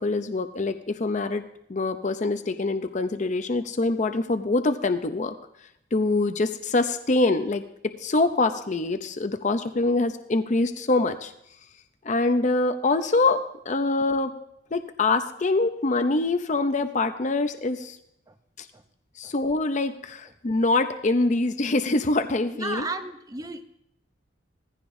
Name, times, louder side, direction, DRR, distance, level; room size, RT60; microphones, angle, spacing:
voice 1, 0.0-1.4 1.7-5.3 5.9-11.3 12.0-14.3 14.7-18.0 18.6-18.7 19.2-22.9, left 2 dB, 40° left, 8 dB, 0.6 m, -24 dB
voice 2, 22.5-23.7, right 3 dB, 20° right, 9 dB, 0.6 m, -34 dB
18.0 x 15.0 x 2.6 m, 0.77 s
head